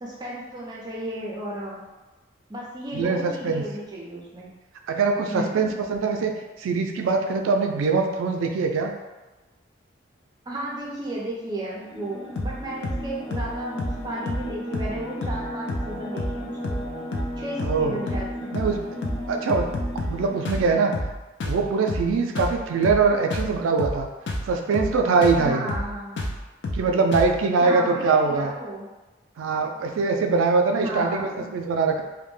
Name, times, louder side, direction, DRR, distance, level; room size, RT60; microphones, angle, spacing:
voice 1, 0.0-1.8 2.5-4.5 5.3-5.7 10.5-16.8 17.4-18.5 25.4-26.2 27.6-28.9 30.8-31.5, right 1 dB, 20° right, -5 dB, 0.4 m, -34 dB
voice 2, 2.9-3.6 4.9-6.3 6.6-8.9 17.6-18.1 18.5-18.9 19.3-19.7 20.1-20.9 21.4-24.1 24.5-25.7 26.7-28.5 29.4-32.0, right 4 dB, 85° right, 3 dB, 0.3 m, -23 dB
sound 1, 11.8-21.0, equal, 85° left, 0.9 m, -35 dB
sound 2, 12.4-12.6 12.8-13.0 13.3-13.5 13.8-14.0 14.3-14.5 14.7-15.0 15.2-15.4 15.7-15.9 16.2-16.4 16.6-16.9 17.1-17.3 17.6-17.8 18.1-18.3 18.5-18.8 19.0-19.2 19.5-20.2 20.4-20.7 20.9-21.1 21.4-21.6 21.9-22.1 22.4-22.6 22.8-23.0 23.3-23.5 23.8-24.0 24.3-24.5 24.7-25.0 25.2-25.4 25.7-25.9 26.2-26.4 26.6-26.9 27.1-27.3, left 1 dB, 60° left, 0.4 m, -29 dB
2.1 x 2.1 x 3.0 m, 1.1 s
head